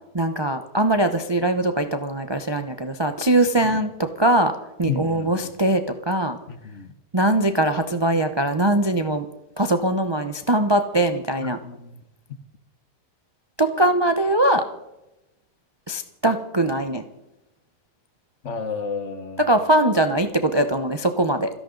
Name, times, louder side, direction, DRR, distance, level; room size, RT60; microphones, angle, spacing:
voice 1, 0.1-3.9 4.2-4.5 4.8-6.4 7.1-9.3 9.6-11.6 13.6-14.6 15.9-17.0 19.5-21.5, right 1 dB, 35° right, 7 dB, 0.4 m, -21 dB
voice 2, 4.9-5.5 6.5-6.9 11.4-12.0 18.4-19.6, left 5 dB, 50° left, 10 dB, 1.2 m, -32 dB
29.0 x 11.0 x 3.9 m, 0.94 s
omnidirectional pair, 1.9 m